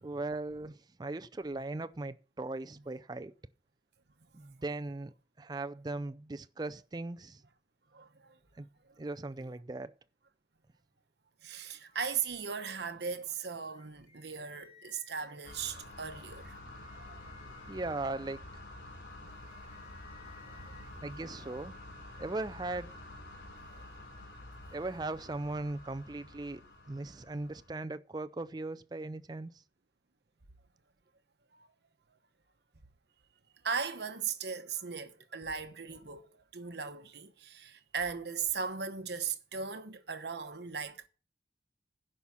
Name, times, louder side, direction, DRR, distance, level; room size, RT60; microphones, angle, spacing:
voice 1, 0.0-3.3 4.3-5.1 5.4-7.4 8.6-8.7 9.0-9.9 17.7-18.4 21.0-21.8 22.2-23.0 24.7-29.6, right 2 dB, 20° right, 0.4 m, -38 dB
voice 2, 7.9-8.3 11.4-16.5 17.0-17.2 20.5-20.8 21.5-21.6 33.6-41.1, right 6 dB, 65° right, 1.1 m, -38 dB
sound 1, 11.9-12.9 13.7-15.3 16.6-17.9 19.3-20.9, left 6 dB, 20° left, 4.5 m, -62 dB
sound 2, 15.4-27.7, left 1 dB, 75° left, 3.4 m, -49 dB
11.0 x 5.6 x 7.1 m
head